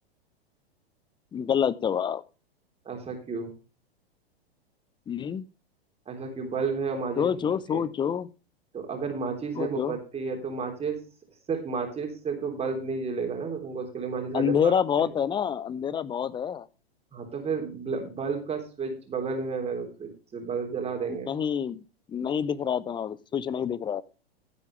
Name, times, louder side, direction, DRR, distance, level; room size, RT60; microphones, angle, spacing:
voice 1, 1.3-2.2 5.1-5.4 7.2-8.3 9.5-9.9 14.3-16.7 21.1-21.8 22.1-24.0, left 8 dB, 15° left, 20 dB, 0.7 m, -27 dB
voice 2, 2.8-3.5 6.1-7.9 8.7-11.0 11.5-14.7 15.0-15.1 17.1-21.3, right 5 dB, 20° right, 3 dB, 3.4 m, -32 dB
15.5 x 8.4 x 3.3 m, 0.32 s
hypercardioid pair, 110°, 31 cm